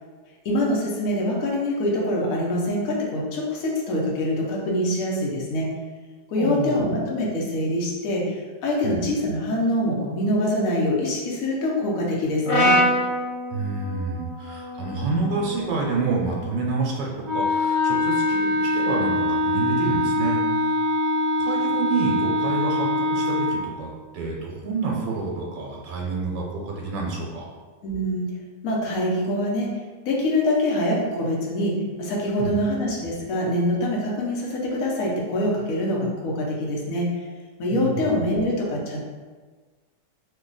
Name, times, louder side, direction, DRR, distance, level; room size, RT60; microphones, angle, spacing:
voice 1, 0.4-5.7 6.3-12.8 27.8-28.3 28.6-29.7 30.0-37.2 37.6-39.0, left 1 dB, 60° left, -3 dB, 1.0 m, -24 dB
voice 2, 6.4-6.9 8.8-9.0 13.5-20.4 21.4-27.5 32.4-32.6 37.7-38.1, right 3 dB, 85° right, -2 dB, 1.3 m, -28 dB
Brass instrument, 12.5-16.7, equal, 80° left, 1.4 m, -26 dB
Wind instrument woodwind instrument, 17.2-23.6, left 1 dB, 65° right, 1.0 m, -23 dB
3.2 x 2.3 x 3.8 m, 1.4 s
omnidirectional pair, 1.9 m